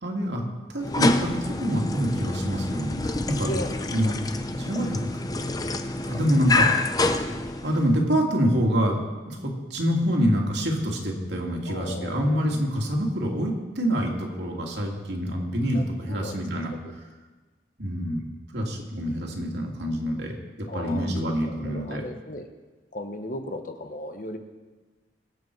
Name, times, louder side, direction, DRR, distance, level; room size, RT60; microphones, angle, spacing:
voice 1, 0.0-0.4 0.7-3.5 3.9-4.2 4.5-5.0 5.4-5.7 6.0-6.9 7.6-9.0 9.3-16.7 17.8-18.2 18.5-22.0, equal, 65° right, 0 dB, 2.5 m, -26 dB
sound 1, 0.8-8.0, left 2 dB, 20° left, 0.6 m, -27 dB
voice 2, 3.4-4.1 11.6-12.4 15.7-16.9 20.7-21.1 21.4-22.5 22.9-24.4, left 1 dB, 45° left, 6 dB, 1.1 m, -36 dB
23.0 x 8.0 x 4.7 m, 1.3 s
head